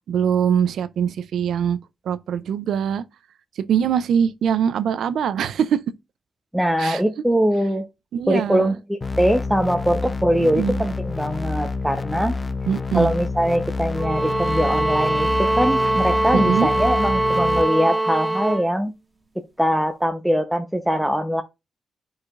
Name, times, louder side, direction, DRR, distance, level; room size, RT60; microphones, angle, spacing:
voice 1, 0.1-1.8 2.1-3.0 3.6-5.8 6.8-7.0 8.1-8.7 10.4-10.8 12.7-13.1 16.3-16.7, right 8 dB, 85° right, 0.4 m, -22 dB
voice 2, 6.5-7.9 8.3-12.3 12.9-18.9 19.6-21.4, equal, 5° right, 0.8 m, -22 dB
sound 1, 9.0-17.6, left 3 dB, 30° left, 0.6 m, -28 dB
sound 2, 13.9-18.7, right 2 dB, 20° right, 1.5 m, -22 dB
9.6 x 4.8 x 2.5 m
cardioid pair, 70°, 0 cm